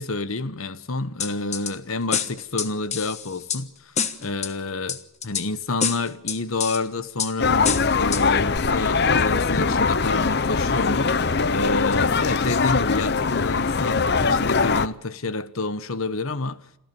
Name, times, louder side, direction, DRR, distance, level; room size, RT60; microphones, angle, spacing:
voice 1, 0.0-3.9 4.2-5.0 5.2-16.6, left 3 dB, 75° left, 1.1 m, -29 dB
sound 1, 1.2-1.7 2.1-3.6 4.0-4.5 4.9-5.5 5.8-6.8 7.2-7.3 7.6-8.2 8.6-8.7, left 7 dB, 30° left, 1.1 m, -27 dB
sound 2, 7.4-14.9, left 4 dB, 50° left, 0.7 m, -22 dB
27.5 x 14.0 x 6.9 m
head